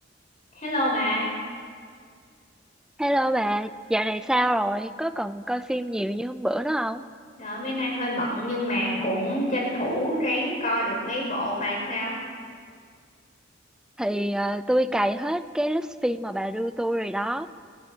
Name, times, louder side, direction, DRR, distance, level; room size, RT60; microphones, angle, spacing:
voice 1, 0.5-1.3 7.4-12.2, equal, 40° left, -3 dB, 5.5 m, -27 dB
voice 2, 3.0-7.0 14.0-17.5, right 1 dB, 5° right, 11 dB, 0.4 m, -26 dB
29.5 x 16.0 x 2.8 m, 2.1 s
head